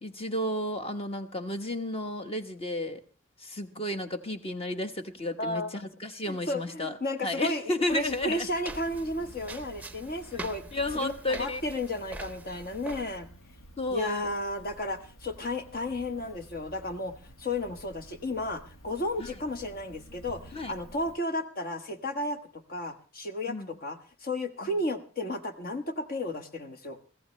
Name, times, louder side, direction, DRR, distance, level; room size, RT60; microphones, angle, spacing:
voice 1, 0.0-3.0 3.4-7.0 7.2-8.5 10.7-11.6 13.8-14.3 19.2-19.3 20.5-20.7 23.5-23.7, left 1 dB, 30° left, 8 dB, 1.3 m, -32 dB
voice 2, 5.4-5.7 6.3-10.6 10.9-13.3 13.9-17.1 17.4-27.0, left 1 dB, 45° left, 7 dB, 1.3 m, -33 dB
sound 1, 7.9-13.0, right 2 dB, 10° right, 0.7 m, -44 dB
Cricket, 8.7-21.1, right 1 dB, 75° left, 1.6 m, -52 dB
23.0 x 15.5 x 3.2 m, 0.35 s
head